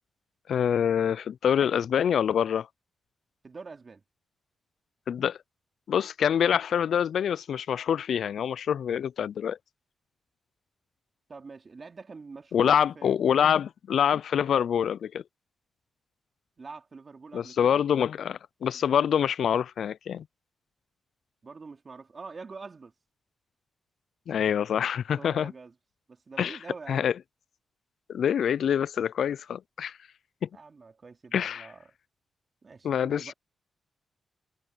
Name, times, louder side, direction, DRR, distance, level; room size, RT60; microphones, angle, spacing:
voice 1, 0.5-2.7 5.1-5.4 5.9-9.6 12.5-15.2 17.3-20.2 24.3-25.5 26.4-26.6 26.9-27.1 28.1-30.0 30.4-30.5 31.3-31.7 32.8-33.3, left 8 dB, 75° left, 0.3 m, -26 dB
voice 2, 3.4-4.0 11.3-13.1 16.6-17.8 21.4-22.9 25.1-25.7 26.1-27.1 30.5-31.8 32.6-33.3, right 4 dB, 45° right, 3.2 m, -45 dB
cardioid pair, 60°, 0 cm